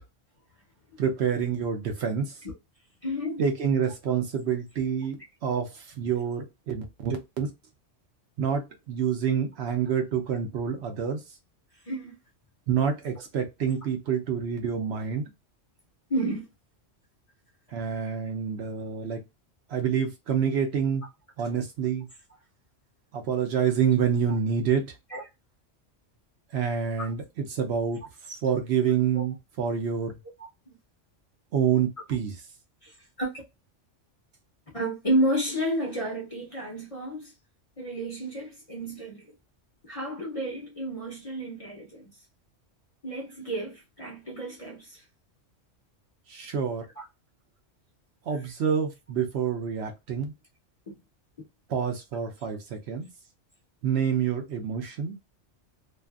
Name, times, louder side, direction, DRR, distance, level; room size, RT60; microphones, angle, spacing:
voice 1, 1.0-2.4 3.4-7.5 8.4-11.2 12.7-15.3 17.7-19.2 19.7-21.0 21.4-22.1 23.1-24.8 26.5-28.0 28.3-30.1 31.5-32.3 46.3-46.9 48.3-50.3 51.7-53.1 53.8-55.1, right 7 dB, 65° right, 0.8 m, -27 dB
voice 2, 3.0-3.4 11.8-12.2 16.1-16.5 25.1-25.2 27.0-27.1 29.1-29.2 30.7-30.8 32.8-33.3 34.7-37.3 37.8-39.3 39.8-42.1 43.0-45.0 47.0-47.1 50.9-51.0, right 1 dB, 35° left, 0.6 m, -31 dB
2.5 x 2.4 x 2.3 m
omnidirectional pair, 1.3 m